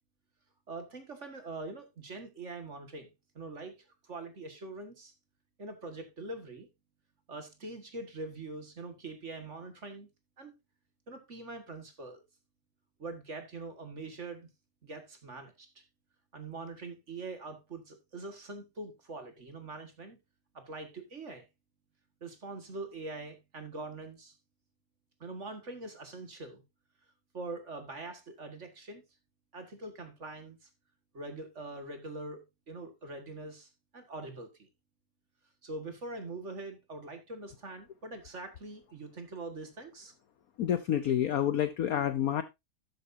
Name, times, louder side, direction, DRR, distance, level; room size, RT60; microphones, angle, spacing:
voice 1, 0.7-3.1 3.4-3.7 4.0-5.1 5.6-6.7 7.3-10.1 10.4-10.5 11.1-12.2 13.0-14.5 14.8-15.8 16.3-20.2 20.5-21.5 22.2-24.4 25.2-26.6 27.3-29.0 29.5-30.7 31.1-34.7 35.6-40.1, right 3 dB, 35° right, 1.9 m, -43 dB
voice 2, 40.6-42.4, left 10 dB, 75° left, 0.8 m, -28 dB
12.0 x 9.0 x 2.7 m
omnidirectional pair, 2.4 m